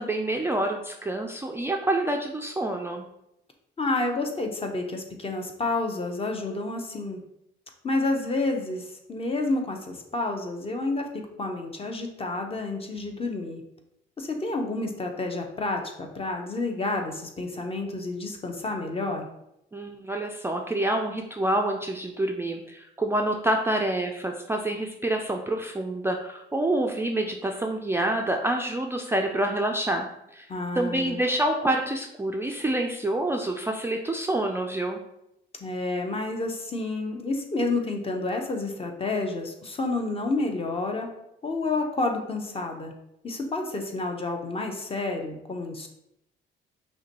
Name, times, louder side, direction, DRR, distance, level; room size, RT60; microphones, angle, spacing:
voice 1, 0.0-3.0 19.7-30.1 30.3-30.5 30.8-35.0, right 1 dB, 10° right, 2 dB, 0.3 m, -27 dB
voice 2, 3.8-7.2 7.8-13.6 14.2-19.3 30.5-31.2 35.6-41.1 41.4-42.9 43.2-45.9, left 2 dB, 30° left, 3 dB, 0.7 m, -29 dB
5.6 x 2.2 x 2.9 m, 0.82 s
cardioid pair, 90°, 20 cm